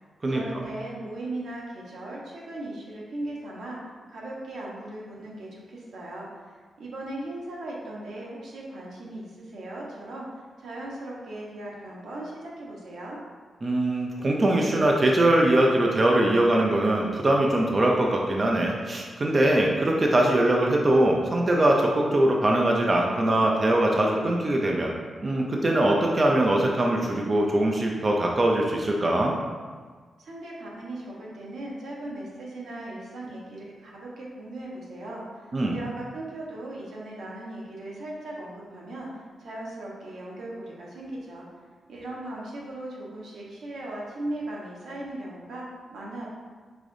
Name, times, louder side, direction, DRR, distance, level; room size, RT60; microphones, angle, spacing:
voice 1, 0.2-10.3 10.6-13.2 30.2-41.5 41.9-46.3, right 1 dB, 90° right, -4 dB, 1.0 m, -38 dB
voice 2, 13.6-24.9 25.2-29.4 35.5-35.7, right 1 dB, 25° right, -1 dB, 0.4 m, -22 dB
4.9 x 3.6 x 2.6 m, 1.5 s
wide cardioid pair, 150°, 0 cm